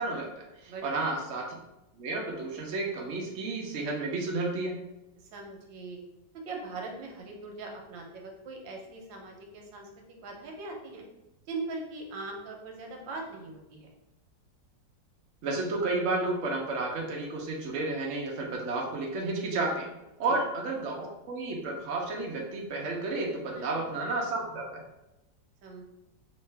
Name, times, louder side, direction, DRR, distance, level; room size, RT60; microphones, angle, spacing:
voice 1, 0.0-1.5 2.0-4.8 15.4-19.9 20.2-24.8, right 2 dB, 55° right, -1 dB, 0.9 m, -32 dB
voice 2, 0.7-1.0 5.3-6.0 6.5-11.0 11.5-13.9 20.3-20.4 23.5-23.7 25.6-25.8, right 3 dB, 85° right, 2 dB, 1.5 m, -41 dB
5.4 x 2.5 x 3.3 m, 0.94 s
omnidirectional pair, 2.0 m